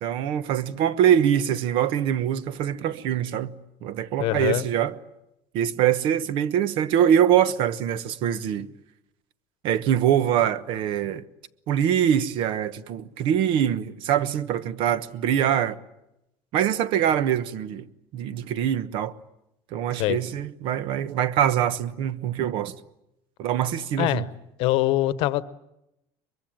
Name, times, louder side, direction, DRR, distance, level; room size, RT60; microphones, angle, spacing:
voice 1, 0.0-3.5 3.8-4.9 5.5-8.7 9.6-11.3 11.7-15.8 16.5-17.9 18.1-19.1 19.7-22.8 23.4-24.3, right 10 dB, 60° right, 1.1 m, -23 dB
voice 2, 4.2-4.6 20.0-20.2 24.0-24.3 24.6-25.4, left 16 dB, 60° left, 1.0 m, -23 dB
23.0 x 23.0 x 8.9 m
cardioid pair, 160°, 10 cm